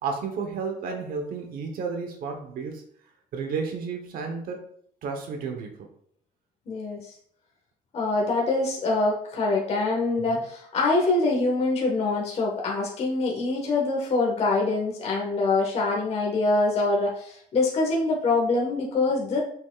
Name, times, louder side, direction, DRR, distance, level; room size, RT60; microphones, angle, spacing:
voice 1, 0.0-2.8 3.3-4.6 5.0-5.9 10.3-10.4, right 5 dB, 70° right, 3 dB, 1.1 m, -32 dB
voice 2, 6.7-7.1 7.9-19.4, left 3 dB, 45° left, -2 dB, 1.5 m, -24 dB
7.0 x 6.1 x 2.4 m, 0.66 s
cardioid pair, 165°, 15 cm